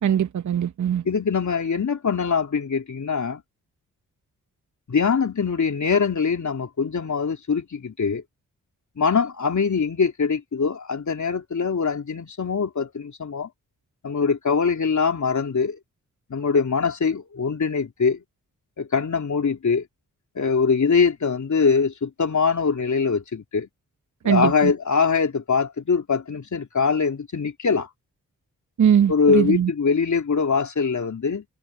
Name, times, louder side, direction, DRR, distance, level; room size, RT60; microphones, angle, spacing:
voice 1, 0.0-1.0 24.2-24.7 28.8-29.7, right 9 dB, 55° right, 0.8 m, -20 dB
voice 2, 1.0-3.4 4.9-8.2 9.0-13.5 14.0-15.8 16.3-18.2 18.8-19.8 20.3-23.7 24.2-27.9 29.1-31.4, left 5 dB, 55° left, 3.3 m, -23 dB
cardioid pair, 45°, 35 cm